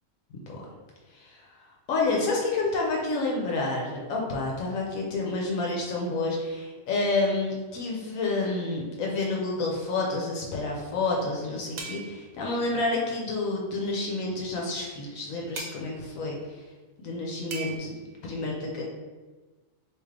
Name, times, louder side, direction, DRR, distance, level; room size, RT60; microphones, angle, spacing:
voice 1, 1.9-16.4 17.0-18.9, left 3 dB, 80° left, -2 dB, 1.0 m, -29 dB
sound 1, 11.8-12.3 15.6-15.8 17.5-17.8, right 4 dB, 85° right, 1.1 m, -37 dB
3.6 x 2.8 x 3.2 m, 1.3 s
omnidirectional pair, 1.4 m